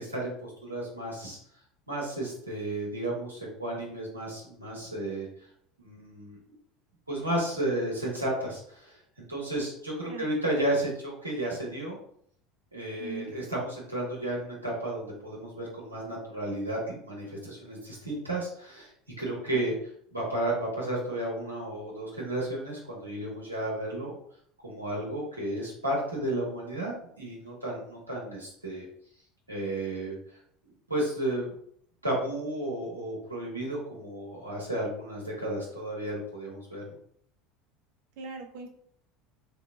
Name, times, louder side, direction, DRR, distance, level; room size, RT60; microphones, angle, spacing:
voice 1, 0.0-1.4 1.9-5.3 5.8-6.4 7.1-9.0 9.3-12.0 12.7-18.9 19.2-19.7 20.1-24.1 24.6-28.9 29.5-30.2 30.9-31.5 32.0-36.9, right 1 dB, 85° right, -4 dB, 1.1 m, -33 dB
voice 2, 13.0-13.4 19.5-19.7 38.2-38.7, right 5 dB, 60° right, 5 dB, 0.7 m, -40 dB
3.3 x 3.0 x 3.5 m, 0.65 s
figure-of-eight pair, 70°, 0 cm